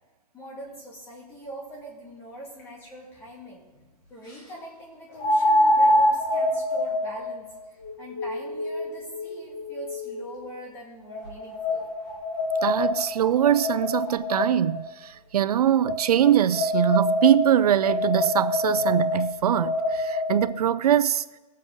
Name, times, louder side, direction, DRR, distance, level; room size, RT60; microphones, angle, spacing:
voice 1, 0.3-3.7 4.1-11.8, right 1 dB, 15° left, 2.0 m, -42 dB
sound 1, 2.6-2.7 5.2-10.4 11.1-14.8 15.8-20.4, left 1 dB, 30° left, 2.5 m, -26 dB
voice 2, 12.6-21.2, right 10 dB, 75° right, 0.5 m, -22 dB
17.5 x 7.4 x 3.8 m
hypercardioid pair, 175°, 20 cm